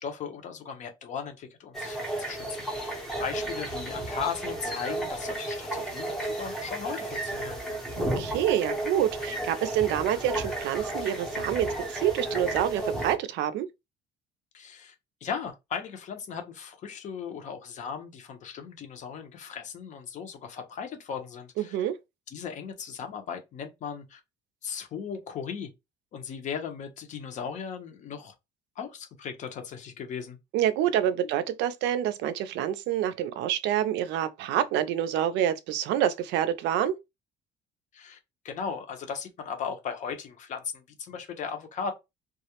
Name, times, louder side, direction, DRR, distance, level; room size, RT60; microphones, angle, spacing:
voice 1, 0.0-7.6 14.5-14.9 15.2-21.8 22.3-24.2 24.6-25.7 26.1-28.3 28.8-30.4 31.2-31.3 37.9-38.2 38.4-41.9, left 6 dB, 40° left, 0.6 m, -37 dB
sound 1, 1.7-13.2, right 1 dB, ahead, 0.6 m, -33 dB
voice 2, 7.9-13.7 21.6-21.9 30.5-37.0, right 11 dB, 75° right, 0.4 m, -27 dB
2.3 x 2.0 x 2.8 m
cardioid pair, 165°, 19 cm